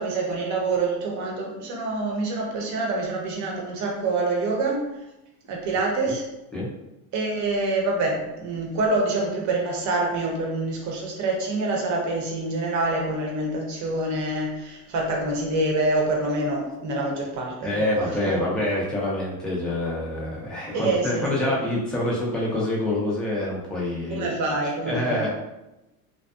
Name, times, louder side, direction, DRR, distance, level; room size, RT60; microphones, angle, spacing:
voice 1, 0.0-4.9 5.5-6.2 7.1-18.3 20.7-21.5 24.1-25.3, right 2 dB, 40° right, 0 dB, 0.7 m, -26 dB
voice 2, 17.6-24.5 24.9-25.3, left 1 dB, ahead, -6 dB, 0.3 m, -26 dB
2.6 x 2.2 x 2.2 m, 0.95 s
supercardioid pair, 115°, 46 cm